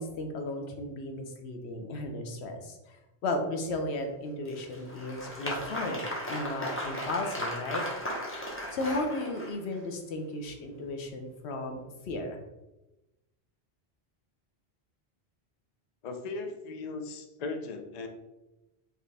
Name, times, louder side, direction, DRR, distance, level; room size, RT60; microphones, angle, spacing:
voice 1, 0.0-3.0 3.2-8.0 8.7-11.8 12.1-12.4, left 2 dB, 90° left, 3 dB, 1.0 m, -35 dB
Applause, 4.5-9.8, equal, 15° left, 0.8 m, -36 dB
voice 2, 16.0-18.1, left 3 dB, 50° left, 5 dB, 0.6 m, -37 dB
4.7 x 3.0 x 3.3 m, 1.0 s
omnidirectional pair, 1.1 m